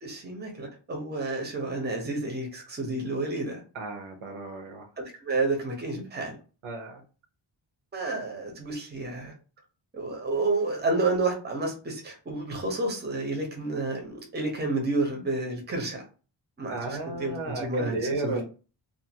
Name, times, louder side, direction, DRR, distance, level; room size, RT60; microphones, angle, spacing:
voice 1, 0.0-3.6 5.2-6.4 7.9-9.3 9.9-16.0 16.6-18.4, right 2 dB, 20° right, 1 dB, 0.7 m, -30 dB
voice 2, 3.7-4.9 6.6-7.0 16.7-18.4, right 2 dB, 80° right, 4 dB, 0.8 m, -33 dB
2.5 x 2.5 x 2.8 m, 0.35 s
wide cardioid pair, 150°, 48 cm